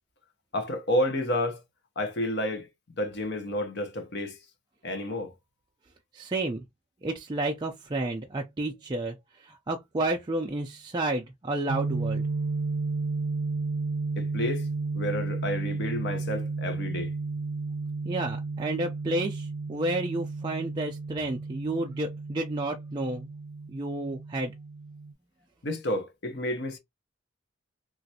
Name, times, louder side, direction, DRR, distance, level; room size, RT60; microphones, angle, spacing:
voice 1, 0.5-1.6 2.0-4.4 4.8-5.3 14.2-14.7 14.9-17.1 25.6-26.8, left 1 dB, 55° left, 0.8 m, -30 dB
voice 2, 6.1-6.6 7.0-12.2 18.0-23.3 23.7-24.5, right 2 dB, 20° right, 0.4 m, -31 dB
sound 1, 11.7-25.1, right 3 dB, 80° right, 0.5 m, -33 dB
3.1 x 2.5 x 2.7 m
head